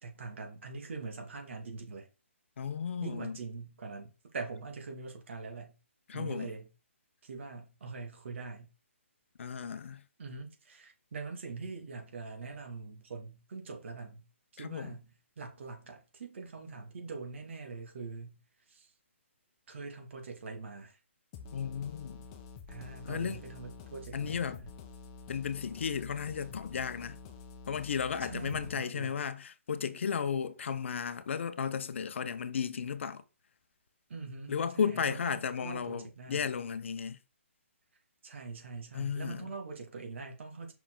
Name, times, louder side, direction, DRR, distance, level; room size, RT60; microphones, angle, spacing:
voice 1, 0.0-2.1 3.0-5.8 6.1-6.7 7.2-8.7 10.2-14.3 14.5-15.1 15.4-18.4 18.7-18.9 19.7-21.0 22.7-24.7 28.2-29.2 34.1-36.5 38.2-40.7, right 4 dB, 65° right, 2.1 m, -43 dB
voice 2, 2.6-3.4 6.1-6.5 9.4-10.0 14.6-15.0 21.5-22.3 23.0-23.4 24.1-24.6 25.3-27.2 27.7-33.2 34.5-37.2 38.9-39.5, left 7 dB, 65° left, 0.7 m, -34 dB
sound 1, 21.3-28.7, left 4 dB, 25° left, 0.9 m, -49 dB
5.7 x 4.6 x 3.7 m
hypercardioid pair, 155°, 7 cm